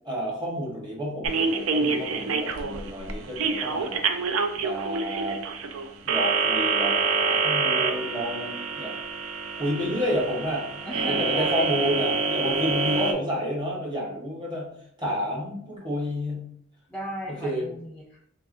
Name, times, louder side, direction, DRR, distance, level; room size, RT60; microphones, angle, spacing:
voice 1, 0.0-4.0 4.6-5.4 6.0-8.9 9.6-10.7 11.1-14.7 15.0-16.5 17.3-17.6, equal, 20° right, -3 dB, 0.9 m, -30 dB
orange hold music, 1.2-13.1, right 4 dB, 75° right, 0.4 m, -27 dB
voice 2, 10.8-11.9 16.9-18.2, equal, 5° left, -5 dB, 0.4 m, -35 dB
3.4 x 2.4 x 2.4 m, 0.69 s
head